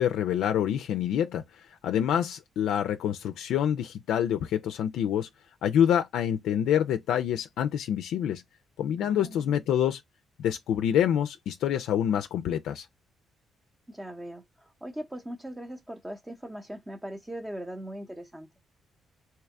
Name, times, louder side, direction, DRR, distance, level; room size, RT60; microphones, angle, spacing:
voice 1, 0.0-5.3 5.6-8.4 8.8-10.0 10.4-12.9, left 9 dB, 80° left, 0.4 m, -27 dB
voice 2, 9.0-9.4 13.9-18.5, right 1 dB, 10° right, 0.7 m, -40 dB
3.3 x 2.8 x 3.5 m
cardioid pair, 90°, 0 cm